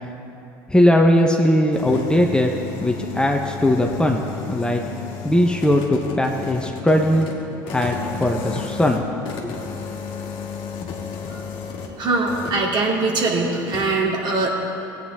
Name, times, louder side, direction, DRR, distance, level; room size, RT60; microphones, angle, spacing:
voice 1, 0.7-2.5 2.8-4.2 4.5-4.8 5.2-7.3 7.7-9.1 9.4-9.5, left 1 dB, 10° left, 2 dB, 1.0 m, -19 dB
sound 1, 1.5-12.0 12.2-12.7 13.7-13.9, left 6 dB, 55° left, 1.7 m, -33 dB
voice 2, 12.0-14.5, right 3 dB, 50° right, -2 dB, 2.6 m, -22 dB
17.0 x 9.2 x 3.6 m, 2.8 s
hypercardioid pair, 75°, 10 cm